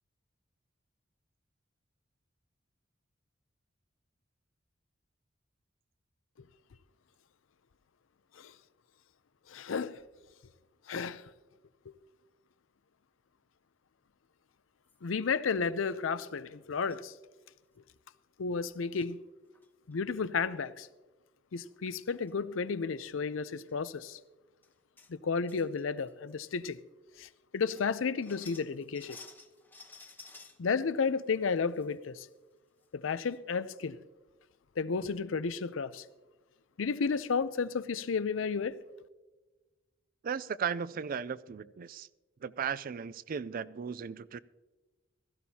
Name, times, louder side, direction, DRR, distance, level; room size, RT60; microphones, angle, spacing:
voice 1, 9.5-10.0 10.9-11.3 15.0-17.1 18.4-19.2 19.9-20.9 21.5-24.2 25.1-26.8 27.2-29.2 30.6-32.3 32.9-34.0 34.8-36.0 36.8-38.8, left 5 dB, 85° left, 0.5 m, -32 dB
sound 1, 14.9-15.3 15.9-16.0 16.9-17.1 17.5-17.6 17.7-18.0 18.7-19.1 19.5-20.0 21.7-21.8 22.1-22.3 22.7-22.8 23.6-23.7 24.2-24.3 24.6-25.1 25.5-26.1 26.5-26.6 27.1-27.2 27.6-30.6 31.1-31.9 32.3-32.4 32.8-32.9 33.2-33.4, left 4 dB, 10° left, 0.9 m, -54 dB
voice 2, 40.2-42.1 42.4-44.4, right 7 dB, 45° right, 0.4 m, -36 dB
16.5 x 14.5 x 2.8 m
head